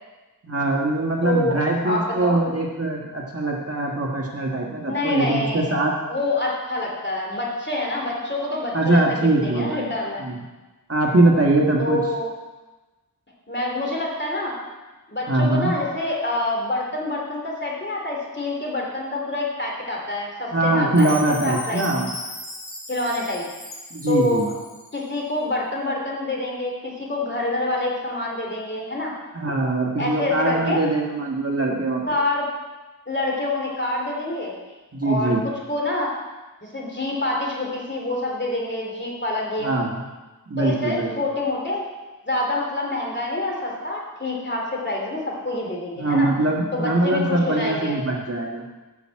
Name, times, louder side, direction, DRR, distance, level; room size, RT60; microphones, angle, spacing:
voice 1, 0.4-5.9 8.7-9.9 10.2-10.3 10.9-12.0 15.3-15.7 20.5-22.1 23.9-24.5 29.3-32.2 34.9-35.4 39.6-40.0 40.5-41.1 46.0-48.6, right 2 dB, 40° right, -1 dB, 1.6 m, -22 dB
voice 2, 1.2-1.6 1.8-2.4 4.9-5.7 6.1-10.2 11.8-12.3 13.5-14.6 15.1-21.1 21.4-21.8 22.9-23.4 24.1-24.5 24.9-29.1 30.0-30.8 32.1-32.5 33.1-34.5 35.0-36.1 36.6-39.8 40.6-41.8 42.3-46.3 46.7-48.0, left 2 dB, 30° left, -2 dB, 2.7 m, -26 dB
Chime, 21.0-25.0, left 1 dB, 85° left, 2.8 m, -38 dB
8.2 x 5.9 x 7.5 m, 1.2 s
wide cardioid pair, 65°, 36 cm